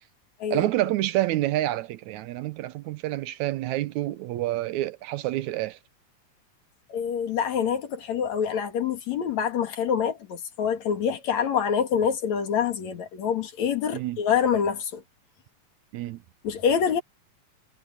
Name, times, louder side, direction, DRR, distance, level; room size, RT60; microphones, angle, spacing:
voice 1, 0.5-5.8 13.9-14.2 15.9-16.2, right 15 dB, 80° right, 2.1 m, -28 dB
voice 2, 6.9-15.0 16.4-17.0, left 7 dB, 65° left, 3.3 m, -26 dB
omnidirectional pair, 3.5 m